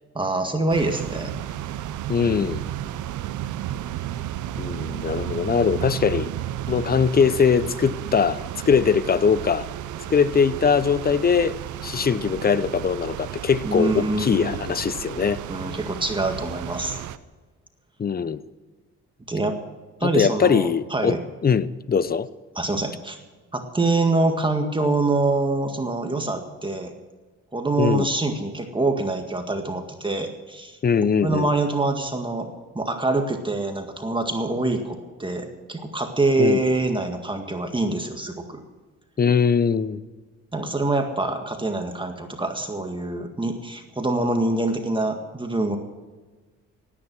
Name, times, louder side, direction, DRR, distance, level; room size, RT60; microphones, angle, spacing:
voice 1, 0.2-1.3 13.6-14.6 15.5-17.0 19.3-19.6 20.0-21.2 22.6-23.2 23.5-26.9 27.5-38.6 40.5-45.8, right 2 dB, 15° right, 1.8 m, -25 dB
sound 1, 0.7-17.2, right 12 dB, 75° right, 0.8 m, -33 dB
voice 2, 2.1-2.6 4.6-6.3 6.7-9.7 10.1-11.6 11.8-15.4 18.0-18.4 20.0-22.3 27.8-28.1 30.8-31.5 36.4-36.6 39.2-40.0, left 6 dB, 30° left, 0.7 m, -21 dB
17.5 x 10.0 x 6.2 m
cardioid pair, 90°, 30 cm